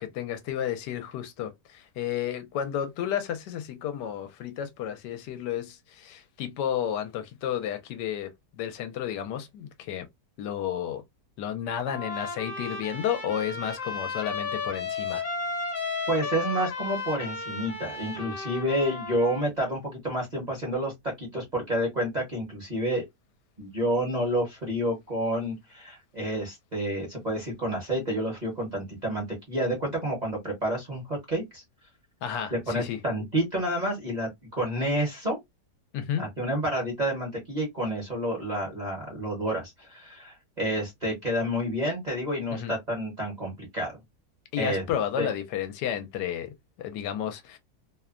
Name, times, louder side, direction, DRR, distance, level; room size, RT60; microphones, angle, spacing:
voice 1, 0.0-10.1 10.4-11.0 11.4-15.2 32.2-33.0 35.9-36.2 42.5-42.7 44.5-47.6, left 9 dB, 80° left, 1.2 m, -32 dB
Trumpet, 11.9-19.5, left 4 dB, 50° left, 1.1 m, -34 dB
voice 2, 16.1-20.9 21.2-23.0 23.6-31.6 32.5-35.4 36.2-44.0 44.6-44.8 45.2-45.3, right 1 dB, 30° right, 0.8 m, -29 dB
3.0 x 2.1 x 2.3 m
omnidirectional pair, 1.8 m